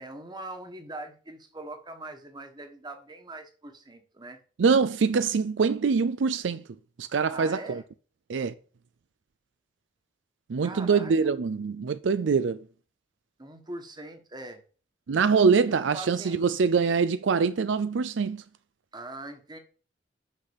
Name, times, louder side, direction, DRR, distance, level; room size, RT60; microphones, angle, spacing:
voice 1, 0.0-4.4 7.3-7.8 10.6-11.3 13.4-14.6 15.9-16.4 18.9-19.6, right 2 dB, 25° right, 1.4 m, -42 dB
voice 2, 4.6-6.6 7.0-7.8 8.3-8.5 10.5-12.6 15.1-18.4, right 5 dB, 75° right, 0.4 m, -24 dB
6.7 x 5.8 x 7.1 m
head